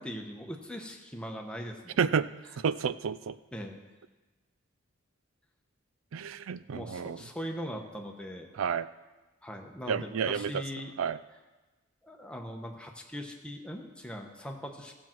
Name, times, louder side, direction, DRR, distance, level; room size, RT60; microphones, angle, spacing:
voice 1, 0.0-2.1 3.5-3.8 6.7-8.5 9.4-10.9 12.0-15.0, equal, 5° left, 2 dB, 1.0 m, -40 dB
voice 2, 2.0-2.3 2.6-3.4 6.1-7.2 8.6-8.9 9.9-10.6 11.0-11.2, right 6 dB, 80° right, 15 dB, 0.4 m, -30 dB
15.5 x 7.5 x 4.5 m, 1.2 s
head